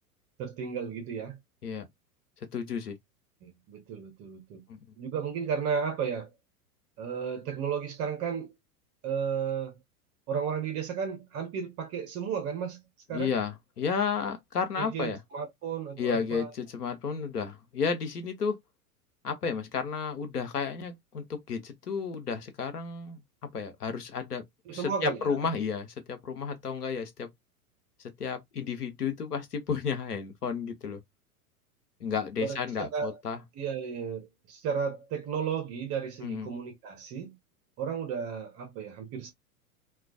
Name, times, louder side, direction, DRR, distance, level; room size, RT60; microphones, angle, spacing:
voice 1, 0.4-1.4 3.4-4.6 5.0-6.3 7.0-8.5 9.0-9.8 10.3-12.8 13.1-13.3 14.8-16.5 24.7-25.4 32.4-33.2 33.6-37.4 37.8-39.3, right 7 dB, 30° right, 0.7 m, -33 dB
voice 2, 2.5-2.9 4.7-4.8 13.1-15.2 16.0-18.6 19.2-23.2 23.5-24.4 24.7-27.3 28.2-31.0 32.0-33.4 36.2-36.5, left 6 dB, 85° left, 0.8 m, -32 dB
2.3 x 2.3 x 2.3 m
figure-of-eight pair, 95°, 45 cm